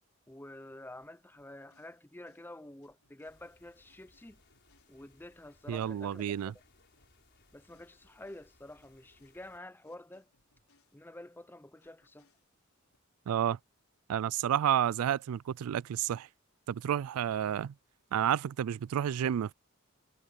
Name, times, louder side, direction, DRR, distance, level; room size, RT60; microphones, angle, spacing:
voice 1, 0.3-4.4 4.9-6.4 7.5-10.3 10.9-12.3, left 1 dB, 10° left, 0.6 m, -49 dB
sound 1, 1.0-5.4 5.8-11.4 11.8-13.0, left 4 dB, 85° left, 4.7 m, -73 dB
sound 2, 3.2-9.6, left 2 dB, 55° left, 5.7 m, -66 dB
voice 2, 5.7-6.5 13.3-13.6 14.1-16.3 16.7-17.7 18.1-19.5, right 9 dB, 90° right, 0.3 m, -30 dB
head